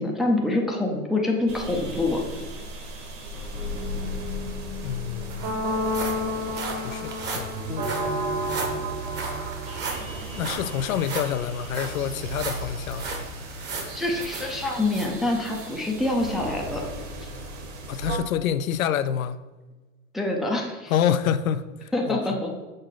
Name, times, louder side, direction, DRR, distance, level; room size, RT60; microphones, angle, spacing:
voice 1, 0.0-2.2 13.9-16.9 20.1-20.9 21.9-22.6, left 2 dB, ahead, 0.4 m, -26 dB
sound 1, 1.5-18.2, equal, 45° right, 1.3 m, -33 dB
sound 2, 4.5-4.6 4.8-15.7 16.2-16.3 16.9-17.0, right 3 dB, 25° right, 1.0 m, -36 dB
voice 2, 4.8-5.5 6.8-8.1 9.2-9.3 10.4-13.1 17.9-19.4 20.9-22.2, left 9 dB, 80° left, 0.5 m, -27 dB
6.5 x 3.9 x 3.8 m
hypercardioid pair, 120°, 41 cm